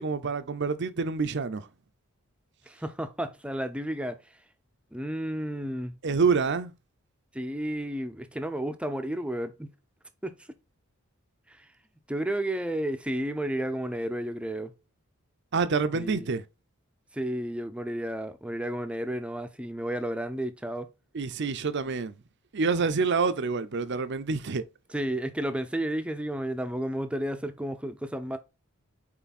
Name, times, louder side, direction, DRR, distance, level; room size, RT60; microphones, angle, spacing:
voice 1, 0.0-1.7 6.0-6.7 15.5-16.4 21.1-22.2 22.5-24.6, right 4 dB, 50° right, 0.6 m, -27 dB
voice 2, 2.7-4.3 4.9-6.0 7.3-9.7 10.2-10.3 11.5-11.7 12.1-14.7 15.9-16.3 17.1-20.9 24.9-28.4, right 1 dB, 5° right, 0.6 m, -32 dB
5.8 x 4.5 x 4.2 m
head